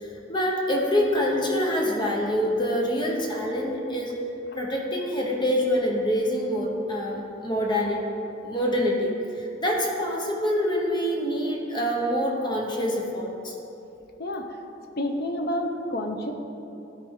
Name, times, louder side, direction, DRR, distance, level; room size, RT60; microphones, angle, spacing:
voice 1, 0.0-4.2 4.5-8.0 8.4-13.5, equal, 25° left, -1 dB, 0.9 m, -26 dB
voice 2, 15.0-16.3, left 1 dB, 55° left, 4 dB, 0.7 m, -29 dB
12.5 x 4.2 x 3.7 m, 2.9 s
head